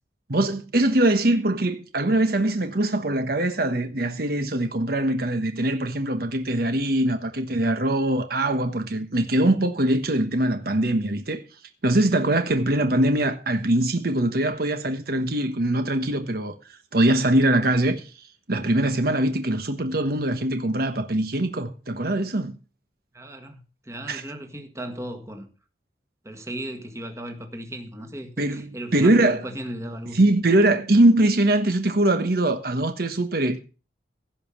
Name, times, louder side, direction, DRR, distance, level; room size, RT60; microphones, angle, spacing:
voice 1, 0.3-11.4 11.8-22.5 24.1-24.2 28.4-28.7 28.9-29.4 30.1-33.6, right 1 dB, 55° right, 1.2 m, -22 dB
voice 2, 23.1-25.5 26.2-30.2, right 1 dB, 15° right, 1.7 m, -36 dB
16.5 x 5.5 x 7.1 m
head